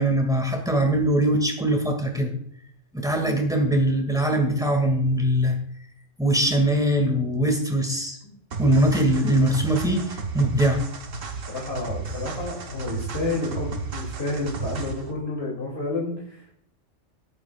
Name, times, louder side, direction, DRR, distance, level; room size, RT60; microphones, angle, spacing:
voice 1, 0.0-2.3 2.9-5.6 6.2-8.2 8.6-10.8, right 1 dB, 5° right, 3 dB, 2.2 m, -22 dB
sound 1, 8.5-15.1, right 4 dB, 85° right, 1.6 m, -33 dB
voice 2, 11.5-16.6, left 2 dB, 55° left, -4 dB, 3.1 m, -30 dB
18.0 x 9.1 x 2.4 m, 0.68 s
omnidirectional pair, 1.3 m